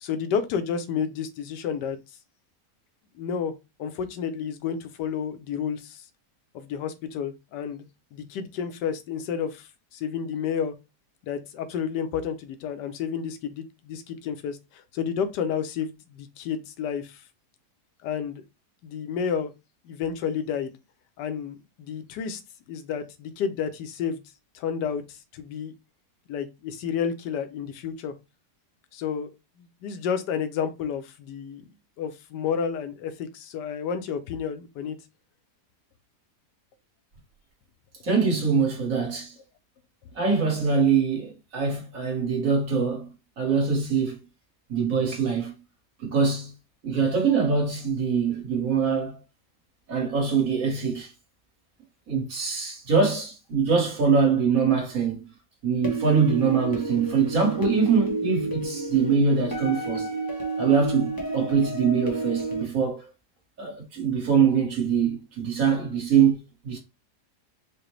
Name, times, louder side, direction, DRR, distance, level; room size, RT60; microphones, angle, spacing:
voice 1, 0.0-2.0 3.1-3.5 3.8-6.0 6.5-10.7 11.2-17.2 18.0-18.4 18.8-19.5 19.8-20.7 21.2-22.4 22.7-24.2 24.5-25.7 26.3-28.1 28.9-29.3 29.8-31.6 32.0-35.0, left 7 dB, 85° left, 1.2 m, -31 dB
voice 2, 38.0-39.3 40.2-43.1 43.4-44.2 44.7-45.5 46.0-46.5 46.8-49.2 49.9-51.1 52.1-55.3 55.6-60.1 60.6-63.1 63.6-66.4 66.6-66.8, right 6 dB, 55° right, 1.7 m, -23 dB
sound 1, 55.8-62.6, right 2 dB, 20° left, 0.6 m, -31 dB
4.8 x 2.2 x 3.1 m
omnidirectional pair, 1.8 m